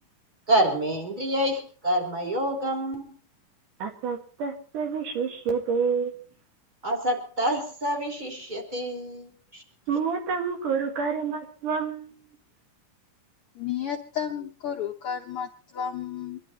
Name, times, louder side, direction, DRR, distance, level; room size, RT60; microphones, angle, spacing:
voice 1, 0.5-3.1 6.8-9.6, right 1 dB, 15° right, 3.0 m, -27 dB
voice 2, 3.8-6.2 9.9-12.1, right 5 dB, 75° right, 3.4 m, -28 dB
voice 3, 13.6-16.4, left 8 dB, 75° left, 1.3 m, -32 dB
25.0 x 11.5 x 4.1 m
omnidirectional pair, 3.7 m